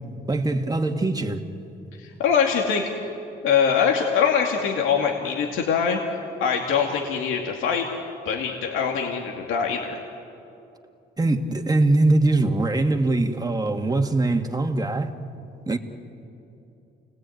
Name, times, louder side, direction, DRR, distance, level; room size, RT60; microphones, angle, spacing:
voice 1, 0.3-1.4 11.2-15.1 15.7-15.8, right 2 dB, 20° right, 5 dB, 1.9 m, -22 dB
voice 2, 2.0-2.9 3.4-6.0 6.4-7.9 8.3-10.0, left 7 dB, 90° left, 0 dB, 2.3 m, -23 dB
29.0 x 19.5 x 9.3 m, 2.8 s
cardioid pair, 90°, 20 cm